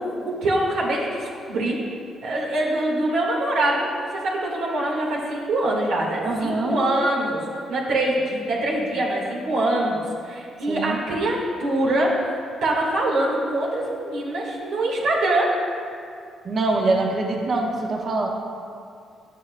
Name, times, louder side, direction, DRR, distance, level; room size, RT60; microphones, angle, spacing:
voice 1, 0.0-1.8 2.2-15.5, right 1 dB, 85° right, -4 dB, 1.8 m, -24 dB
voice 2, 6.2-6.8 10.7-11.0 16.4-18.3, right 2 dB, 50° right, -1 dB, 1.2 m, -24 dB
10.5 x 8.3 x 2.3 m, 2.4 s
cardioid pair, 90°, 0 cm